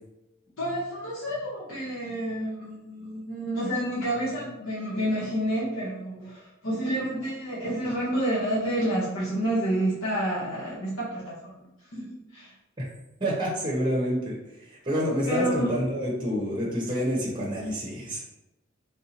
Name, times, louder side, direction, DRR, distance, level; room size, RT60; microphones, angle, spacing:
voice 1, 0.6-12.5 15.3-15.7, right 1 dB, 80° left, -7 dB, 0.9 m, -29 dB
voice 2, 13.2-18.2, equal, 20° right, -4 dB, 0.8 m, -28 dB
3.5 x 2.6 x 2.8 m, 0.93 s
head